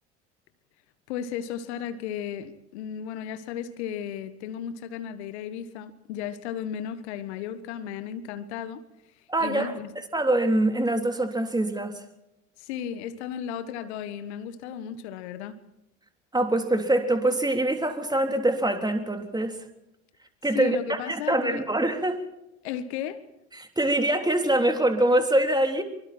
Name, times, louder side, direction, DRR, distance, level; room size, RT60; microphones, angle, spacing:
voice 1, 1.1-8.8 9.4-9.9 12.6-15.6 20.5-21.6 22.6-23.2, left 9 dB, 70° left, 1.4 m, -34 dB
voice 2, 9.3-12.0 16.3-19.6 20.4-22.2 23.6-25.8, right 1 dB, 10° right, 3.5 m, -24 dB
25.0 x 24.0 x 4.4 m
figure-of-eight pair, 60°, 35 cm